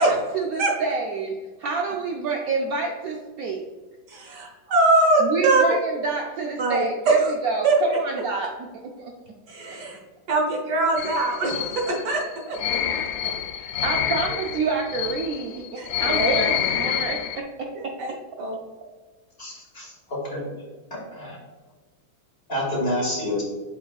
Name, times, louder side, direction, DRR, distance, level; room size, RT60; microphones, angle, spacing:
voice 1, 0.0-3.6 5.2-9.1 13.5-17.9, right 4 dB, 75° right, 1 dB, 0.8 m, -28 dB
voice 2, 4.1-5.6 6.6-7.3 7.6-8.0 9.5-10.0 10.3-12.8 15.8-16.3 17.7-18.5, right 2 dB, 60° right, 1 dB, 1.5 m, -23 dB
sound 1, 11.0-17.4, left 9 dB, 80° left, 0.8 m, -27 dB
voice 3, 19.4-20.4 21.1-21.4 22.5-23.4, left 1 dB, 30° left, -5 dB, 2.0 m, -28 dB
7.9 x 5.2 x 2.3 m, 1.3 s
omnidirectional pair, 2.2 m